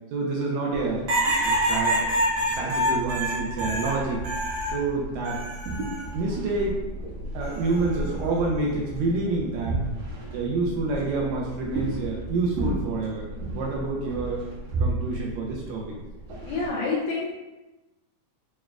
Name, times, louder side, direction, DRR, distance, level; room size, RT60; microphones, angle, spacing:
voice 1, 0.1-1.1 1.4-2.0 2.4-4.2 4.7-5.4 6.1-6.8 7.3-9.8 10.3-14.4 14.8-16.0, right 3 dB, 90° right, -2 dB, 1.6 m, -28 dB
sound 1, 0.7-16.7, right 2 dB, 70° right, 1.7 m, -34 dB
sound 2, 1.1-4.8 5.2-6.0 7.4-7.8, equal, 55° right, 1.4 m, -26 dB
voice 2, 16.4-17.4, left 3 dB, 80° left, -5 dB, 1.6 m, -27 dB
6.3 x 2.3 x 2.3 m, 1.0 s
omnidirectional pair, 3.8 m